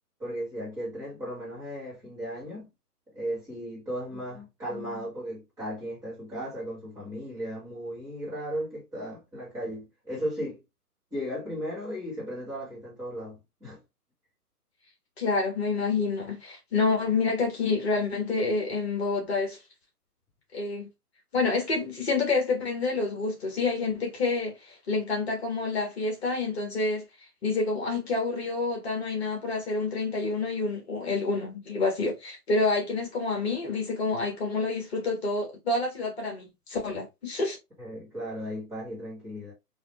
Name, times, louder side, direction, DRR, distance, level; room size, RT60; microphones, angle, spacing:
voice 1, 0.2-2.7 3.1-10.6 11.1-13.8 37.8-39.5, equal, 5° right, 1.9 m, -36 dB
voice 2, 15.2-19.6 20.5-20.9 21.3-27.1 27.4-37.6, left 3 dB, 40° left, 1.6 m, -28 dB
4.1 x 2.9 x 3.0 m
figure-of-eight pair, 135°, 47 cm